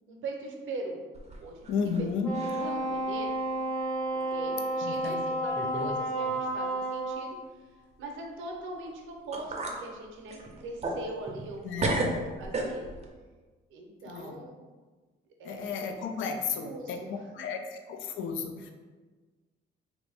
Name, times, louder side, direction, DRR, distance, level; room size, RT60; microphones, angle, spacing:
voice 1, 0.1-1.0 1.4-1.7 2.0-2.1 2.4-3.4 4.1-12.9 13.7-14.6 15.4-16.3 16.6-17.5, right 2 dB, 80° right, 1 dB, 0.6 m, -41 dB
sound 1, 1.1-2.0 2.3-2.8 3.2-3.3 4.2-4.3 5.0-5.1 5.5-6.0 6.2-6.3 8.9-9.0 9.3-9.8 10.3-11.5 11.8-13.1, right 2 dB, 35° right, 0.5 m, -33 dB
voice 2, 1.7-2.3 4.8-5.2 11.6-12.2 14.1-14.4 15.4-18.7, left 5 dB, 80° left, 5 dB, 0.4 m, -33 dB
Wind instrument woodwind instrument, 2.2-7.3, right 1 dB, 10° left, 0.9 m, -31 dB
3.0 x 2.5 x 3.3 m, 1.3 s
cardioid pair, 90°, 20 cm